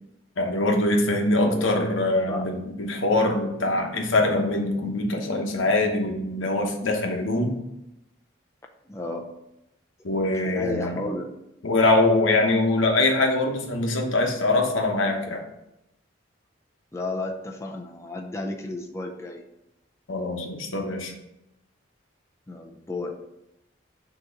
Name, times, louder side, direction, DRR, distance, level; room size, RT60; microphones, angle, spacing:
voice 1, 0.4-7.6 10.0-11.0 11.6-15.4 20.1-21.1, left 2 dB, 90° left, 3 dB, 1.0 m, -23 dB
voice 2, 1.4-1.9 2.3-2.5 8.9-9.3 10.4-11.3 16.9-19.4 22.5-23.3, left 2 dB, 15° left, 2 dB, 0.4 m, -33 dB
6.3 x 3.0 x 5.6 m, 0.86 s
head